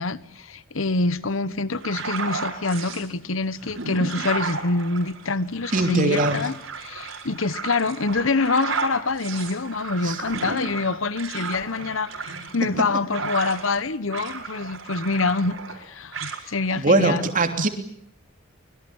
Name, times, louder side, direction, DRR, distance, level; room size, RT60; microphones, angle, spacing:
voice 1, 0.0-6.5 6.8-17.3 17.6-17.7, left 3 dB, 90° left, 1.1 m, -26 dB
sound 1, 1.8-3.1 3.5-13.8 14.1-15.8 16.1-16.4, right 4 dB, 85° right, 5.2 m, -33 dB
voice 2, 5.7-6.4 10.0-10.2 16.8-17.7, right 2 dB, 45° right, 3.2 m, -21 dB
25.0 x 22.0 x 8.8 m
head